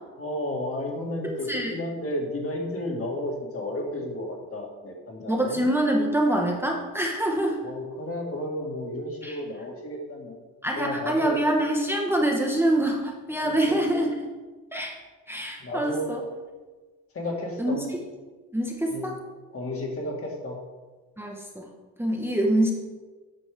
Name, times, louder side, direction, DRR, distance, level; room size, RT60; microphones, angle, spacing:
voice 1, 0.2-5.6 7.6-10.4 10.8-11.4 13.4-13.8 15.6-16.1 17.1-17.8 18.9-19.1 19.5-20.6, left 1 dB, 40° left, 0 dB, 1.9 m, -32 dB
voice 2, 1.2-1.7 5.3-7.6 9.2-9.4 10.6-14.1 14.7-15.0 15.3-16.2 17.6-17.8 18.5-19.2 21.2-21.7 22.0-22.7, right 1 dB, 5° right, -1 dB, 1.1 m, -25 dB
8.4 x 5.3 x 3.5 m, 1.3 s
supercardioid pair, 85°, 35 cm